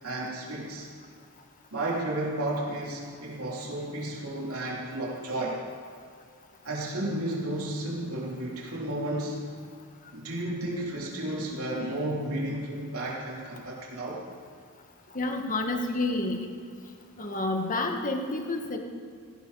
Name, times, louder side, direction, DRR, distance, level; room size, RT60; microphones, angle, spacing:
voice 1, 0.0-0.9 1.7-5.6 6.6-9.4 10.1-14.2, right 1 dB, 70° right, -4 dB, 3.3 m, -32 dB
voice 2, 15.1-16.5 17.2-18.8, left 2 dB, 35° left, 3 dB, 1.6 m, -29 dB
17.5 x 17.0 x 4.1 m, 2.2 s
head